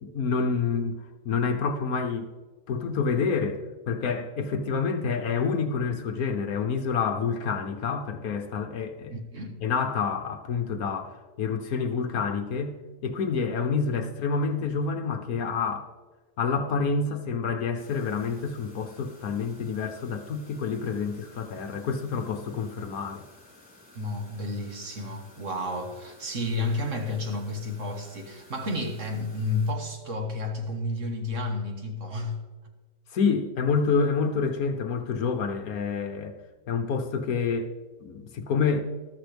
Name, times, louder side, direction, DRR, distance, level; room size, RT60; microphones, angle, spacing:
voice 1, 0.0-2.3 2.7-9.2 9.6-12.8 13.0-15.9 16.4-23.2 33.1-36.3 36.7-37.7 38.0-38.8, left 5 dB, 60° left, 1.2 m, -28 dB
voice 2, 9.1-9.6 23.9-32.4, left 2 dB, 50° right, 1.6 m, -31 dB
sound 1, 17.8-29.7, left 2 dB, 5° left, 4.0 m, -54 dB
14.0 x 13.0 x 3.4 m
omnidirectional pair, 1.8 m